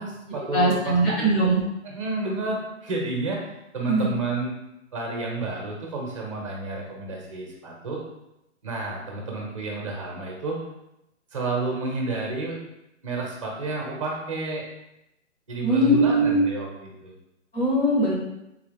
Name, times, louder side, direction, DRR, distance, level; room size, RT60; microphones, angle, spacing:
voice 1, 0.0-1.6 1.8-3.4 3.7-4.5 4.9-8.0 8.6-10.6 11.3-12.6 13.0-14.7 15.5-17.1, right 3 dB, 25° right, -2 dB, 0.7 m, -30 dB
voice 2, 0.5-1.6 3.8-4.1 15.6-16.4 17.5-18.2, right 1 dB, 50° left, -5 dB, 1.4 m, -21 dB
3.7 x 2.3 x 3.4 m, 0.87 s
hypercardioid pair, 180°, 36 cm